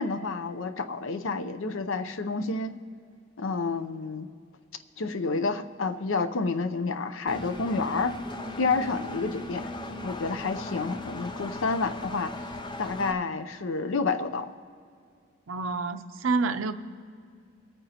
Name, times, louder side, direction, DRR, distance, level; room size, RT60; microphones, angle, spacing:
voice 1, 0.0-2.7 3.4-4.3 5.0-8.2 8.6-9.7 10.0-12.5 12.8-14.5, left 4 dB, 70° left, 10 dB, 0.6 m, -29 dB
Engine, 7.3-13.1, left 2 dB, 25° left, 0.6 m, -37 dB
voice 2, 15.5-16.7, right 3 dB, 80° right, 9 dB, 0.6 m, -28 dB
25.0 x 8.9 x 2.8 m, 2.2 s
head